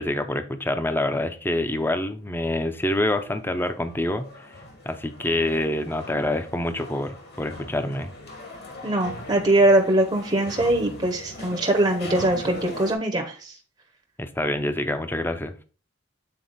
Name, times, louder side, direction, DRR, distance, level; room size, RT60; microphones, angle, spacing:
voice 1, 0.0-4.5 4.9-8.1 14.2-15.5, left 1 dB, 10° left, 9 dB, 0.6 m, -26 dB
sound 1, 2.6-12.9, left 2 dB, 60° left, 1.7 m, -40 dB
voice 2, 8.8-13.5, right 1 dB, 25° right, 3 dB, 0.8 m, -22 dB
7.7 x 4.1 x 4.0 m, 0.35 s
head